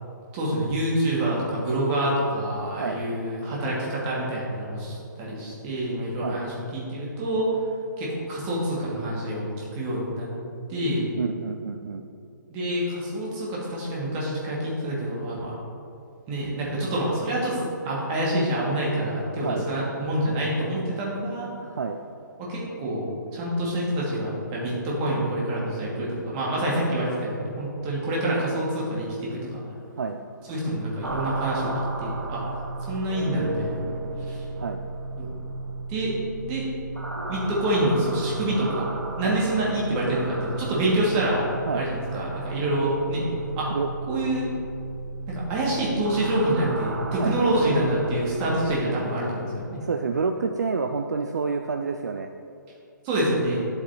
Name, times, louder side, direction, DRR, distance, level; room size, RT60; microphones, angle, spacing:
voice 1, 0.3-7.5 8.0-10.3 10.7-11.1 12.5-15.5 16.3-17.6 17.8-21.5 22.4-23.0 23.3-29.6 30.5-31.7 32.0-32.4 32.9-33.8 34.3-34.4 35.2-35.3 35.9-36.1 36.4-36.7 37.3-38.9 39.2-41.5 41.7-43.2 43.6-43.7 44.1-44.5 45.3-49.8 53.0-53.6, right 1 dB, 20° right, -5 dB, 2.0 m, -27 dB
voice 2, 11.2-12.1 19.3-19.7 21.6-22.0 30.0-30.2 34.6-34.8 39.2-39.4 41.7-41.9 43.7-43.9 47.1-47.4 49.8-52.3, right 5 dB, 60° right, 5 dB, 0.4 m, -29 dB
sound 1, 31.0-48.7, right 2 dB, 85° right, 1.0 m, -33 dB
11.0 x 7.6 x 2.9 m, 2.6 s
figure-of-eight pair, 130°, 11 cm